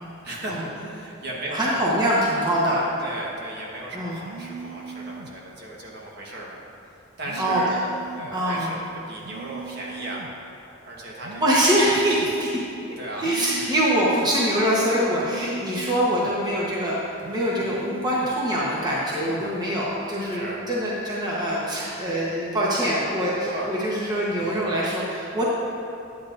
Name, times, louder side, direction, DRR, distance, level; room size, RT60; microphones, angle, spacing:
voice 1, 0.2-1.9 3.0-6.6 7.2-7.8 8.2-10.2 10.8-11.6 13.0-13.3 13.5-13.7 17.6-17.9 18.2-18.4 20.3-20.6 23.3-23.7 24.3-24.7, right 1 dB, 50° right, -3 dB, 1.2 m, -36 dB
voice 2, 1.5-2.8 3.9-4.2 7.4-7.6 8.3-8.8 11.4-12.6 13.2-17.0 17.3-25.4, equal, 20° right, -6 dB, 1.0 m, -24 dB
sound 1, 4.2-5.4 7.2-8.4 9.2-10.4 11.2-12.4 13.2-14.4 15.2-16.4 17.2-18.4 19.2-19.5, right 5 dB, 70° right, 0.4 m, -39 dB
9.7 x 9.1 x 2.5 m, 2.9 s
head